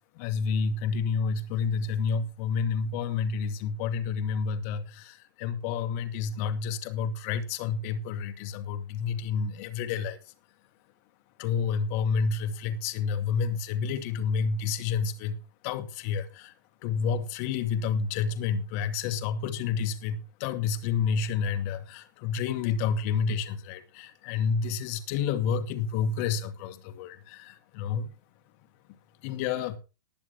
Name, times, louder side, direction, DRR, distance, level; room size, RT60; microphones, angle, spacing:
voice 1, 0.2-10.2 11.4-15.4 15.6-16.5 16.8-28.1 29.2-29.8, left 6 dB, 45° left, 2.0 m, -29 dB
19.5 x 7.3 x 3.4 m
hypercardioid pair, 115°, 11 cm